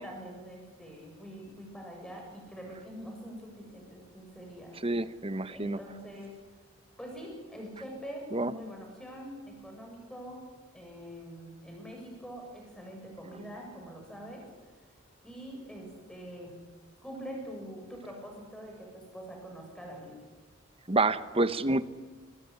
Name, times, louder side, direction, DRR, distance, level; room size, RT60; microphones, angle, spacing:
voice 1, 0.0-4.8 5.5-6.4 7.0-14.5 15.2-16.7 17.0-20.3, equal, 5° left, 1 dB, 7.4 m, -44 dB
voice 2, 4.8-5.8 8.3-8.5 20.9-21.9, right 2 dB, 25° right, 13 dB, 0.9 m, -28 dB
24.0 x 20.0 x 9.9 m, 1.3 s
head